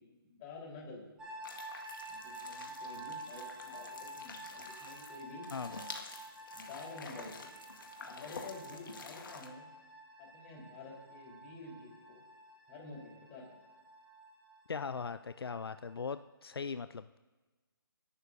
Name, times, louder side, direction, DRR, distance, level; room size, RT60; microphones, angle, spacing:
voice 1, 0.2-1.0 2.1-5.5 6.5-7.5 8.0-9.7 10.2-12.2 12.7-13.6, left 3 dB, 25° left, -2 dB, 3.9 m, -49 dB
sound 1, 1.2-16.2, right 1 dB, 5° right, 2.3 m, -50 dB
sound 2, 1.4-9.5, left 4 dB, 60° left, 1.8 m, -49 dB
voice 2, 14.7-17.2, left 5 dB, 80° left, 12 dB, 0.4 m, -39 dB
26.5 x 11.0 x 2.7 m, 1.2 s
figure-of-eight pair, 145°, 13 cm